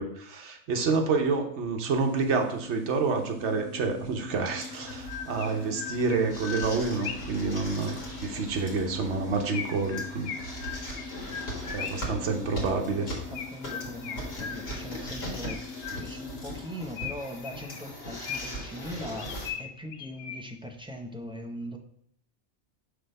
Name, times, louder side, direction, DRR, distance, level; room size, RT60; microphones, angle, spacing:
voice 1, 0.0-10.3 11.7-13.1 15.9-16.0, right 4 dB, 75° right, 3 dB, 1.1 m, -28 dB
sound 1, 1.9-16.6, left 4 dB, 15° left, 2.2 m, -44 dB
sound 2, 4.6-19.5, equal, 65° left, 1.9 m, -40 dB
Chirp tweet, 4.8-7.4 9.5-12.2 13.3-14.9 15.5-16.3 17.0-18.7 19.2-20.7, left 7 dB, 80° left, 0.9 m, -39 dB
voice 2, 12.4-21.8, equal, 5° right, 2 dB, 0.4 m, -41 dB
5.8 x 3.4 x 5.2 m, 0.68 s
omnidirectional pair, 1.2 m